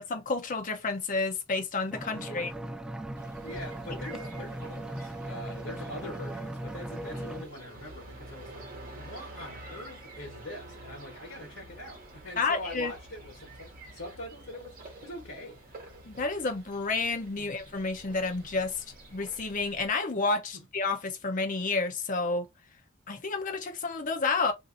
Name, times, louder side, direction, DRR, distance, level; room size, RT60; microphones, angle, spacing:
voice 1, 0.0-2.5 3.9-4.2 12.4-12.9 16.0-18.8 19.1-22.5 23.1-24.5, left 3 dB, 40° left, 0.7 m, -30 dB
voice 2, 1.8-2.5 3.3-8.7 8.9-15.7 17.4-17.6 20.5-20.7, left 1 dB, 90° left, 1.1 m, -43 dB
sound 1, 1.9-7.4, right 1 dB, 5° right, 0.3 m, -38 dB
sound 2, 3.2-19.9, right 2 dB, 45° right, 1.0 m, -49 dB
2.7 x 2.5 x 3.7 m
head